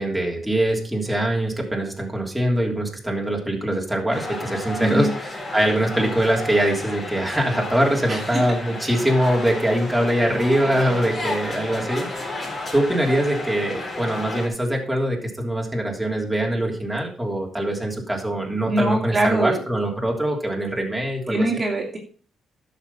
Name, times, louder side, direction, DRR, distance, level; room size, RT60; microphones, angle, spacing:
voice 1, 0.0-21.5, right 1 dB, 5° right, -1 dB, 3.1 m, -23 dB
sound 1, 4.1-14.5, left 2 dB, 30° left, 4.2 m, -32 dB
voice 2, 8.1-8.4 10.6-11.1 18.6-19.6 21.3-22.0, right 1 dB, 25° right, 0 dB, 2.5 m, -23 dB
11.5 x 6.6 x 5.6 m, 0.41 s
cardioid pair, 90°, 0 cm